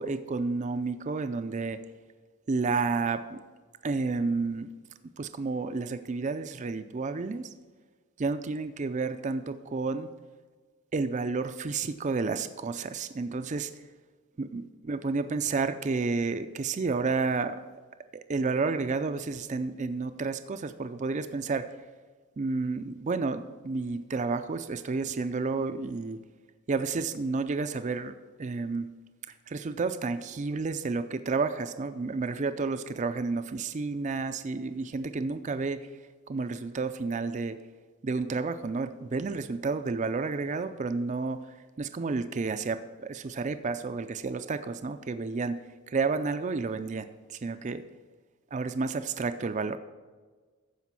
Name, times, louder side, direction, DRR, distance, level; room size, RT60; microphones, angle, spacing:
voice 1, 0.0-1.8 2.5-3.4 3.8-4.7 5.2-7.5 8.2-10.1 10.9-13.7 14.4-17.6 18.3-21.7 22.4-26.2 26.7-28.9 29.5-35.9 36.3-37.6 38.0-41.4 41.8-45.6 45.9-47.8 48.5-49.8, right 4 dB, 35° right, 10 dB, 0.4 m, -31 dB
14.0 x 5.1 x 6.0 m, 1.4 s
head